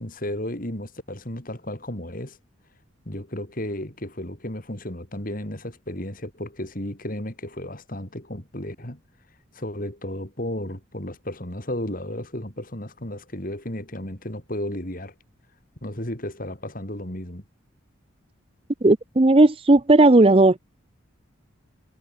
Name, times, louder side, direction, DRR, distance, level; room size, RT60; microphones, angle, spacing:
voice 1, 0.0-2.4 3.1-9.0 9.5-15.1 15.8-17.4, left 1 dB, 45° left, 3.8 m, -33 dB
voice 2, 18.8-20.6, right 2 dB, 25° right, 0.6 m, -15 dB
head